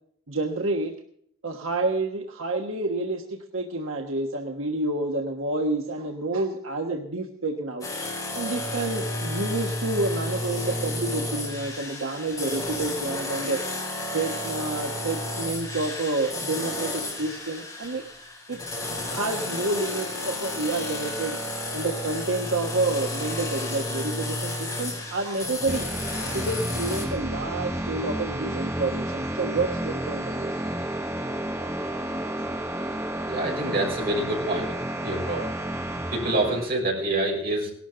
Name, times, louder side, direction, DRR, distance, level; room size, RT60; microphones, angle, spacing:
voice 1, 0.3-0.9 1.4-7.9 8.3-13.6 14.1-18.0 18.5-18.6 19.0-21.4 21.7-25.9 26.3-30.5, right 2 dB, 75° right, 2 dB, 1.4 m, -29 dB
sound 1, 7.8-27.0, left 1 dB, 15° left, 4.6 m, -32 dB
sound 2, 25.7-36.7, right 1 dB, 10° right, 1.1 m, -31 dB
voice 2, 33.3-34.7 35.0-35.5 36.1-37.7, right 1 dB, 45° right, -2 dB, 6.5 m, -26 dB
18.0 x 12.5 x 3.9 m, 0.67 s
head